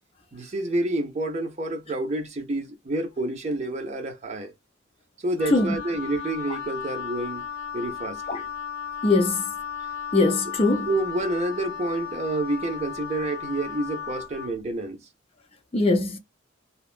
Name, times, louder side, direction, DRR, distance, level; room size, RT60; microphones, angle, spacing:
voice 1, 0.3-4.5 5.2-7.4 7.7-8.5 10.9-15.0, right 2 dB, 35° right, 0.6 m, -29 dB
Wind instrument woodwind instrument, 5.4-14.5, left 8 dB, 70° left, 0.9 m, -35 dB
voice 2, 9.0-9.5 10.1-10.9 15.7-16.2, left 2 dB, 30° left, 0.5 m, -21 dB
2.8 x 2.1 x 2.4 m
head